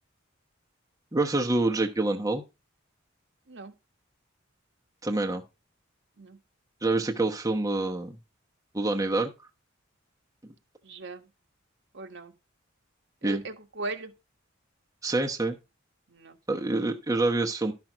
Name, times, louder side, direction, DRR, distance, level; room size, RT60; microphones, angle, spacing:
voice 1, 1.1-2.4 5.0-5.4 6.8-8.2 8.7-9.3 13.2-13.4 15.0-15.6 16.5-17.7, right 2 dB, 15° right, 1.0 m, -26 dB
voice 2, 10.8-11.2 11.9-12.3 13.2-14.1 16.1-16.4, right 2 dB, 65° right, 1.5 m, -38 dB
12.0 x 6.0 x 5.1 m
head